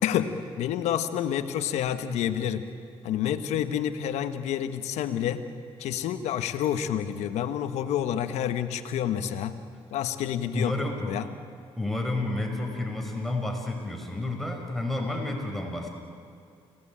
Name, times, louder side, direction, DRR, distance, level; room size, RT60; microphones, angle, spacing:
voice 1, 0.0-2.7 3.0-5.4 5.8-9.6 9.9-10.7 11.1-11.3, left 10 dB, 90° left, 9 dB, 1.3 m, -28 dB
voice 2, 10.5-11.1 11.8-15.9, left 2 dB, ahead, 1 dB, 5.6 m, -30 dB
30.0 x 18.0 x 8.8 m, 2.3 s
supercardioid pair, 65°, 11 cm